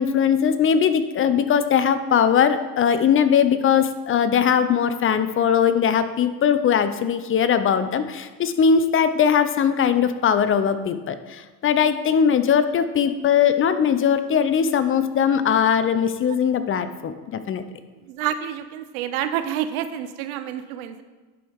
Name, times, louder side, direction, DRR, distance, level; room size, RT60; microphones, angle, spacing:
voice 1, 0.0-17.6, left 7 dB, 30° left, 11 dB, 0.5 m, -20 dB
voice 2, 18.0-21.0, right 10 dB, 90° right, 11 dB, 0.7 m, -28 dB
11.0 x 4.6 x 3.5 m, 1.3 s
supercardioid pair, 95°, 41 cm